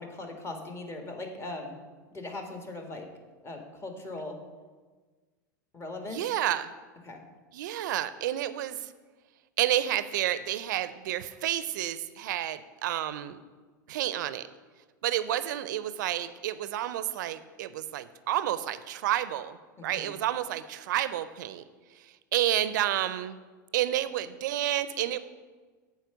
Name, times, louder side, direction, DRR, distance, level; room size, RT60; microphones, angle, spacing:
voice 1, 0.0-1.7 2.1-3.1 3.4-4.4 5.7-6.2 7.0-7.2 19.8-20.1, left 2 dB, 25° left, 4 dB, 1.6 m, -39 dB
voice 2, 6.1-6.7 7.5-8.9 9.6-13.4 13.9-14.5 15.0-21.6 22.0-23.4 23.7-25.2, right 12 dB, 70° right, 14 dB, 0.5 m, -30 dB
7.8 x 4.7 x 6.9 m, 1.4 s
hypercardioid pair, 90°, 10 cm